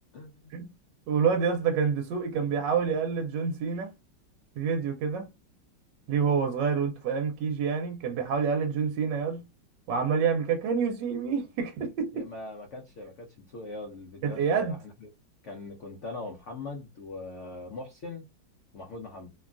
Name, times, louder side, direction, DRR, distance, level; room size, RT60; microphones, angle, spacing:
voice 1, 1.1-3.9 4.6-5.3 6.1-9.5 9.9-12.3 14.2-14.8, right 6 dB, 80° right, 1.3 m, -27 dB
voice 2, 12.1-15.1 15.4-18.3 18.7-19.3, left 2 dB, 75° left, 0.6 m, -41 dB
3.1 x 2.2 x 2.4 m
omnidirectional pair, 2.0 m